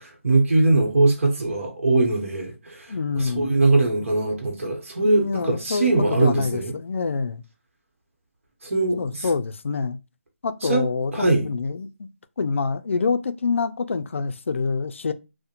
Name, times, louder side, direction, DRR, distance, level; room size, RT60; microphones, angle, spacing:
voice 1, 0.0-6.7 8.6-9.3 10.6-10.9 11.1-11.5, right 2 dB, 75° right, 0.9 m, -21 dB
voice 2, 2.9-3.6 5.0-7.4 9.0-10.0 10.4-11.1 11.4-11.9 12.4-15.1, left 4 dB, 65° left, 0.3 m, -26 dB
2.4 x 2.1 x 2.9 m
hypercardioid pair, 175°, 7 cm